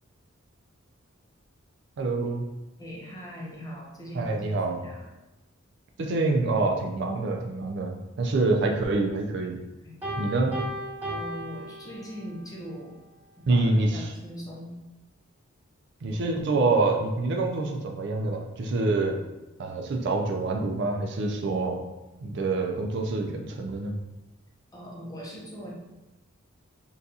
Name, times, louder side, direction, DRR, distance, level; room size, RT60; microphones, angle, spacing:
voice 1, 2.0-2.4 4.1-4.8 6.0-9.6 10.1-10.5 13.5-14.1 16.0-19.2 19.6-21.8 22.2-23.9, right 3 dB, 60° right, 2 dB, 0.4 m, -26 dB
voice 2, 2.8-5.0 9.8-10.6 11.1-13.0 13.4-14.7 24.7-25.7, equal, 20° left, -3 dB, 0.6 m, -41 dB
Piano, 10.0-12.4, right 1 dB, 10° right, 1.4 m, -35 dB
3.9 x 2.3 x 2.6 m, 1.0 s
head